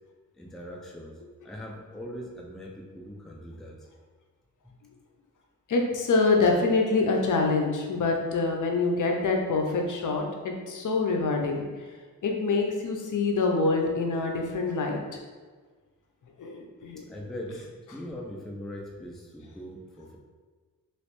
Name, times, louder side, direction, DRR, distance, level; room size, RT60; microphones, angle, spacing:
voice 1, 0.3-3.9 17.0-20.2, equal, ahead, -2 dB, 0.4 m, -41 dB
voice 2, 5.7-11.6 12.2-15.2 16.4-17.0, left 3 dB, 60° left, 1 dB, 0.6 m, -25 dB
3.1 x 3.0 x 3.0 m, 1.4 s
wide cardioid pair, 100°, 35 cm